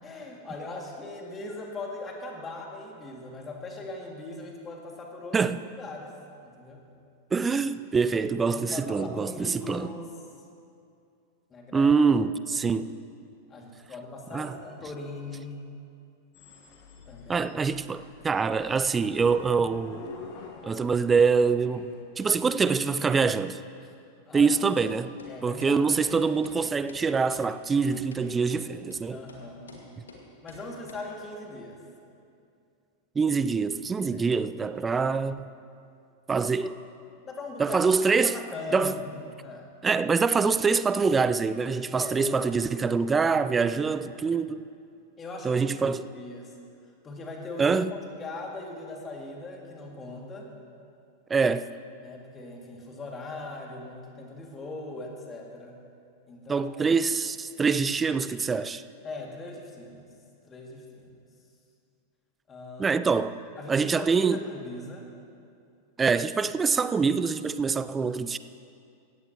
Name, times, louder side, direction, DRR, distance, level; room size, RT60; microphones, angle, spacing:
voice 1, 0.0-5.4 5.8-6.1 6.4-6.8 8.4-10.1 11.5-11.9 12.5-12.7 13.5-15.6 17.1-17.5 17.8-18.3 24.3-24.5 25.3-25.9 29.1-29.8 30.4-31.8 34.0-34.3 36.3-36.7 37.2-37.8 38.2-39.7 41.9-42.5 45.2-45.6 46.1-46.6 47.0-47.8 48.2-50.5 52.0-55.8 56.3-56.7 59.0-60.1 60.4-61.1 62.5-63.0 63.6-65.1, left 2 dB, 20° left, 2.2 m, -40 dB
voice 2, 7.3-9.9 11.7-12.9 14.3-14.5 17.3-20.0 20.6-23.6 24.3-25.1 25.4-29.2 33.2-35.5 36.3-36.7 37.6-38.4 38.7-38.9 39.8-44.6 45.4-46.0 47.6-47.9 51.3-51.7 56.5-58.8 62.8-63.3 63.7-64.4 66.0-68.4, right 5 dB, 15° right, 0.4 m, -25 dB
sound 1, 16.3-22.0, left 4 dB, 40° left, 1.6 m, -47 dB
sound 2, 24.3-24.5 24.8-24.9 25.2-25.3 25.6-25.7 26.0-26.1 26.4-26.6 26.9-27.0 27.3-27.4 27.7-27.8 28.1-28.2 28.5-28.6 28.9-29.0 29.3-29.4 29.7-29.8 30.1-30.2 30.5-30.6 30.9-31.0, left 5 dB, 70° left, 2.0 m, -47 dB
17.5 x 15.0 x 3.0 m
figure-of-eight pair, 90°, 0 cm